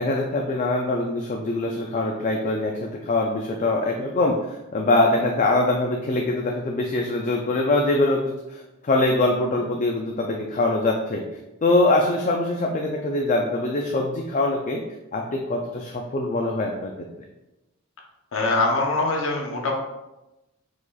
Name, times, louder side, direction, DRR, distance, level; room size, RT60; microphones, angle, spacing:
voice 1, 0.0-11.2 11.6-14.8 15.1-16.9, left 2 dB, 35° left, 1 dB, 0.4 m, -23 dB
voice 2, 18.3-19.7, left 2 dB, 65° left, 0 dB, 0.8 m, -23 dB
4.8 x 4.0 x 2.3 m, 0.99 s
head